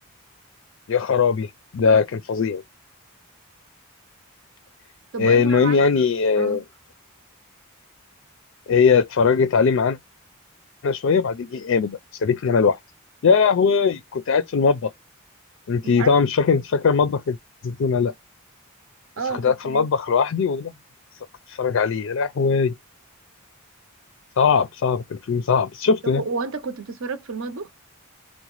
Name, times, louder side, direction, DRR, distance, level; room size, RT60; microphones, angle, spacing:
voice 1, 0.9-2.6 5.2-6.6 8.7-10.0 10.8-12.8 13.2-14.9 15.7-17.4 17.6-18.1 19.3-20.7 21.5-22.7 24.4-26.2, left 5 dB, 60° left, 0.4 m, -20 dB
voice 2, 5.1-5.9 6.4-6.7 15.8-16.1 19.2-19.9 26.0-27.7, right 4 dB, 65° right, 0.6 m, -30 dB
3.9 x 2.1 x 3.0 m
head